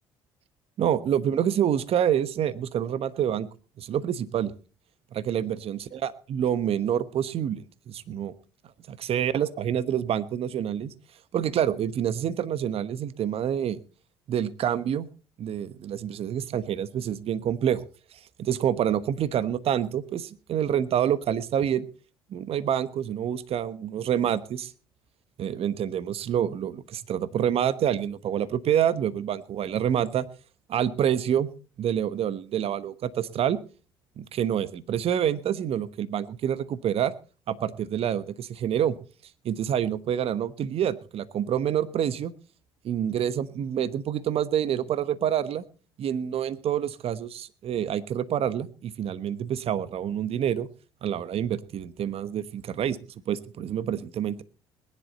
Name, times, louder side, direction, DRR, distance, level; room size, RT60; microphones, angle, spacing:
voice 1, 0.8-3.5 3.8-4.5 5.1-8.3 8.9-10.9 11.3-13.8 14.3-15.1 15.4-17.8 18.4-21.9 22.3-24.7 25.4-30.3 30.7-31.5 31.8-33.6 34.2-37.1 37.5-38.9 39.4-42.3 42.8-45.6 46.0-50.7 51.0-53.0 53.3-54.4, right 9 dB, 55° right, 15 dB, 1.2 m, -27 dB
20.5 x 11.0 x 4.2 m, 0.37 s
hypercardioid pair, 55°, 12 cm